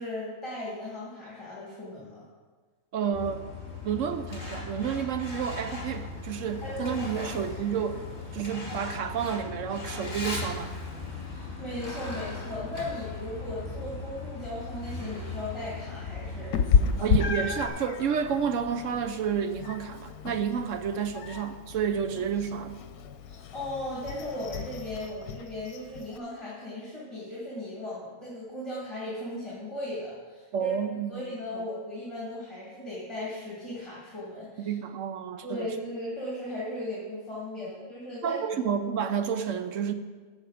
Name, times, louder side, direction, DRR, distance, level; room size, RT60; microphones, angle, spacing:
voice 1, 0.0-2.3 6.6-7.2 11.3-16.6 16.9-17.2 23.2-30.7 31.1-34.7 35.4-38.6, left 1 dB, 20° left, -7 dB, 2.5 m, -37 dB
voice 2, 2.9-3.5 3.8-8.0 8.3-10.8 17.0-22.8 30.5-31.2 31.5-31.7 34.6-35.7 38.2-39.9, right 7 dB, 65° right, 9 dB, 0.9 m, -30 dB
Truck, 3.1-17.7, left 3 dB, 35° left, 2.7 m, -38 dB
Meow, 16.5-26.2, left 6 dB, 75° left, 1.1 m, -31 dB
15.0 x 5.8 x 4.9 m, 1.4 s
omnidirectional pair, 1.6 m